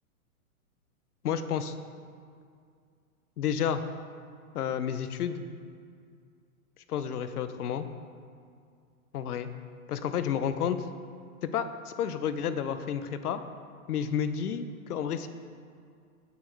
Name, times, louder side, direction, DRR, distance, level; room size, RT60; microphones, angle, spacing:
voice 1, 1.2-1.8 3.4-3.8 4.5-5.4 6.9-7.8 9.1-9.5 9.9-10.8 11.4-13.4 13.9-15.3, left 8 dB, 85° left, 10 dB, 0.9 m, -30 dB
8.7 x 6.2 x 6.3 m, 2.2 s
hypercardioid pair, 150°, 44 cm